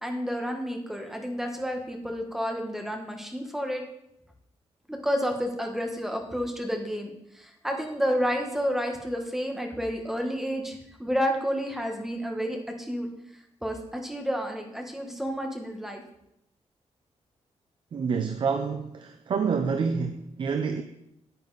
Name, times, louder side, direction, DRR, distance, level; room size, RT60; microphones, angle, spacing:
voice 1, 0.0-3.8 4.9-13.1 13.6-16.0, equal, 5° right, 1.2 m, -30 dB
voice 2, 17.9-20.8, right 5 dB, 45° right, 0.6 m, -28 dB
9.4 x 8.7 x 4.0 m
wide cardioid pair, 175°, 11 cm